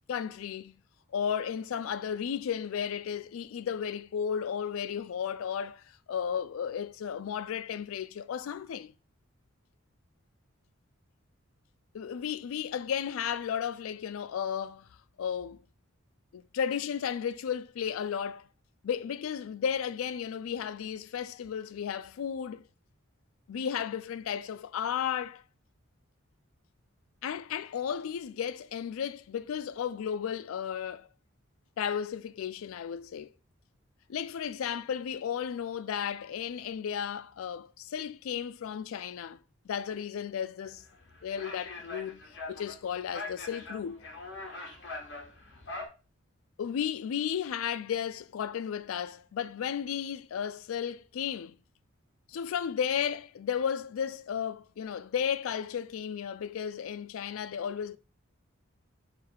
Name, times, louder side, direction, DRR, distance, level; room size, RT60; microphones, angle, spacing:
voice 1, 0.1-0.7 1.1-8.9 11.9-14.9 15.2-15.6 16.3-18.5 18.8-22.6 23.5-25.4 27.2-31.1 31.8-33.3 34.1-39.4 39.6-40.8 41.2-44.0 46.6-51.6 52.3-58.0, left 8 dB, 85° left, 0.3 m, -34 dB
sound 1, 40.6-45.9, left 2 dB, 60° left, 1.2 m, -42 dB
4.8 x 2.3 x 4.6 m
head